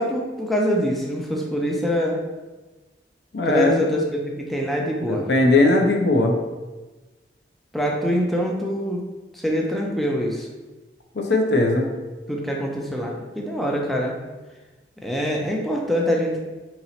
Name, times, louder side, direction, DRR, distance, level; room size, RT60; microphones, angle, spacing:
voice 1, 0.0-2.2 3.5-5.3 7.7-9.0 9.3-10.5 12.3-14.2 15.0-16.4, equal, ahead, -1 dB, 0.4 m, -24 dB
voice 2, 3.3-3.8 5.1-6.4 11.1-11.9, left 2 dB, 75° left, 2 dB, 0.5 m, -19 dB
2.9 x 2.8 x 4.1 m, 1.2 s
head